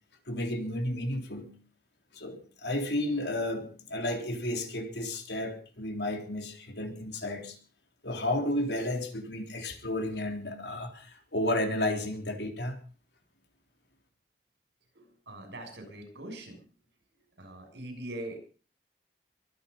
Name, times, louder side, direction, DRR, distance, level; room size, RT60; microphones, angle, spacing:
voice 1, 0.3-1.5 2.1-7.6 8.0-12.8, left 1 dB, 80° left, 4 dB, 3.7 m, -32 dB
voice 2, 14.9-16.6 17.4-18.4, right 1 dB, 85° right, 5 dB, 6.7 m, -42 dB
23.0 x 10.0 x 5.4 m, 0.39 s
head